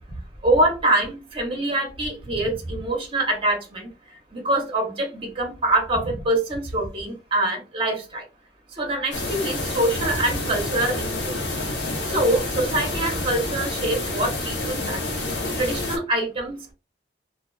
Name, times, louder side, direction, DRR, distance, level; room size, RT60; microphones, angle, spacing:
voice 1, 0.4-3.9 4.3-8.2 8.8-11.4 12.1-15.0 15.6-16.7, right 1 dB, 30° right, 0.7 m, -24 dB
sound 1, 9.1-16.0, left 2 dB, 65° left, 0.8 m, -28 dB
2.4 x 2.3 x 2.3 m
head